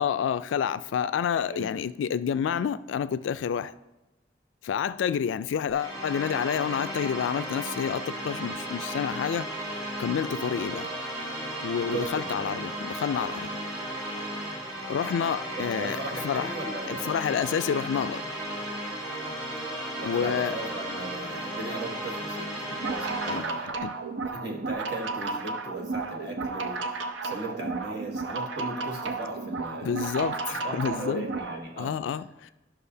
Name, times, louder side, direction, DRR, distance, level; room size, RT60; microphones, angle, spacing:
voice 1, 0.0-3.7 4.6-9.5 10.0-10.9 11.6-13.5 14.9-16.0 16.2-16.5 16.9-18.2 20.0-20.6 23.3-23.4 23.8-23.9 29.8-31.3 31.8-32.5, left 7 dB, 85° left, 0.3 m, -29 dB
voice 2, 1.4-1.7 11.8-12.7 13.0-13.1 14.7-14.8 15.6-17.2 17.4-17.6 19.2-19.3 20.0-23.7 24.2-26.9 27.2-30.0 30.5-32.0, right 2 dB, 60° right, 1.4 m, -38 dB
sound 1, 5.7-23.7, right 1 dB, 30° right, 2.3 m, -35 dB
sound 2, 22.7-31.6, right 4 dB, 80° right, 0.6 m, -33 dB
11.5 x 5.9 x 2.7 m
head